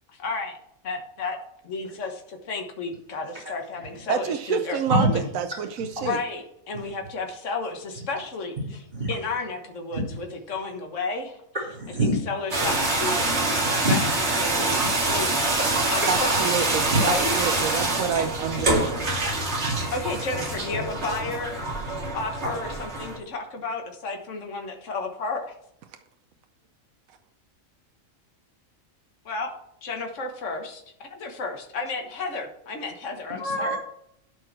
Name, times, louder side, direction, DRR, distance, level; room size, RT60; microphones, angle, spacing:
voice 1, 0.1-0.5 0.8-1.4 1.6-5.3 6.0-8.8 9.1-11.4 12.0-16.6 17.0-17.3 19.9-25.6 29.3-29.5 29.8-33.8, left 3 dB, 60° left, 3 dB, 1.7 m, -32 dB
voice 2, 4.1-6.2 16.1-18.9, right 8 dB, 80° right, 7 dB, 1.1 m, -28 dB
voice 3, 11.7-12.2 13.8-14.0 16.9-17.0 19.2-19.9 33.4-33.8, right 1 dB, 40° right, -8 dB, 3.1 m, -26 dB
sound 1, 12.5-23.2, right 2 dB, 55° right, 2.2 m, -25 dB
12.5 x 4.7 x 6.0 m, 0.72 s
omnidirectional pair, 1.4 m